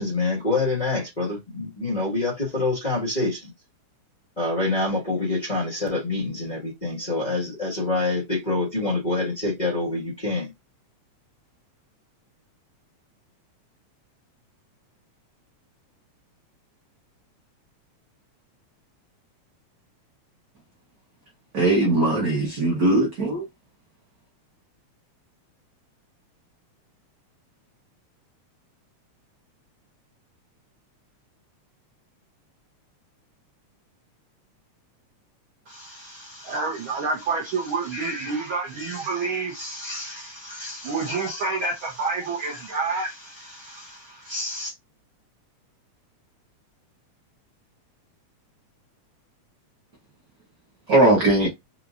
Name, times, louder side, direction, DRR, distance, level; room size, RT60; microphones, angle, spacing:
voice 1, 0.0-3.4 4.4-10.5, left 2 dB, 25° left, 1.0 m, -26 dB
voice 2, 21.5-23.4 50.9-51.5, right 2 dB, 90° right, 0.8 m, -19 dB
voice 3, 35.7-44.7, right 3 dB, 75° right, 1.2 m, -29 dB
4.8 x 3.0 x 2.4 m
omnidirectional pair, 3.4 m